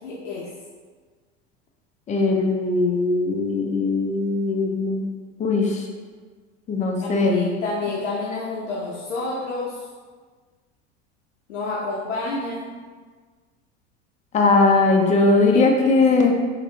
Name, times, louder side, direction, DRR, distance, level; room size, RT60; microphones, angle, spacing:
voice 1, 0.0-0.5 7.0-9.8 11.5-12.7 15.5-16.0, left 3 dB, 90° left, -4 dB, 0.5 m, -30 dB
voice 2, 2.1-5.0 5.4-5.8 6.7-7.6 12.3-12.4 14.3-16.3, left 3 dB, 20° left, 2 dB, 0.4 m, -19 dB
3.3 x 2.1 x 2.7 m, 1.5 s
hypercardioid pair, 80°, 35 cm